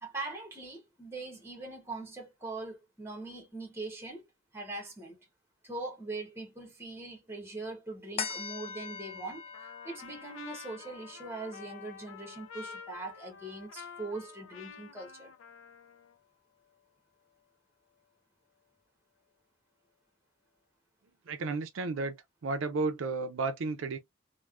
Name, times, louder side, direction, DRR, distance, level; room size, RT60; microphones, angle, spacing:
voice 1, 0.0-4.3 4.5-5.3 5.6-9.5 9.8-15.3, right 2 dB, 10° right, 1.0 m, -41 dB
sound 1, 8.2-14.9 15.4-15.5, left 6 dB, 30° left, 0.4 m, -44 dB
Trumpet, 9.5-16.2, left 6 dB, 85° left, 0.5 m, -49 dB
voice 2, 21.3-22.2 22.4-24.0, right 3 dB, 75° right, 0.5 m, -32 dB
3.3 x 2.2 x 2.4 m
head